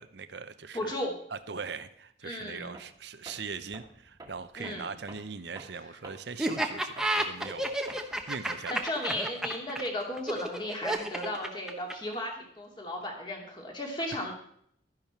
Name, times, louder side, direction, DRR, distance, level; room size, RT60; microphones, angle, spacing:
voice 1, 0.0-0.9 1.3-7.8 8.3-8.8, right 5 dB, 70° right, 12 dB, 0.8 m, -40 dB
voice 2, 0.7-1.1 2.2-2.8 4.6-4.9 8.7-14.3, left 1 dB, 25° left, 0 dB, 2.8 m, -35 dB
Tools, 2.7-3.0 3.3-8.3, right 2 dB, 20° right, 1.7 m, -49 dB
Laughter, 6.4-12.2, right 1 dB, 5° right, 1.0 m, -31 dB
12.5 x 10.5 x 4.5 m, 0.67 s
head